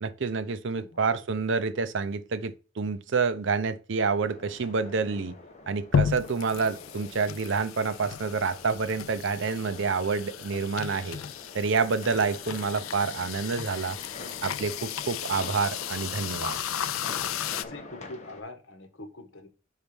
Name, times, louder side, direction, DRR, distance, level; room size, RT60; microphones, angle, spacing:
voice 1, 0.0-5.3 5.7-11.2 11.5-14.0 14.4-16.6, right 4 dB, 60° right, 0.6 m, -28 dB
sound 1, 4.2-18.4, left 3 dB, 35° left, 1.1 m, -46 dB
sound 2, 5.9-17.6, left 8 dB, 80° left, 0.5 m, -34 dB
voice 2, 17.5-19.5, left 2 dB, 60° left, 1.3 m, -44 dB
5.7 x 4.5 x 5.1 m
head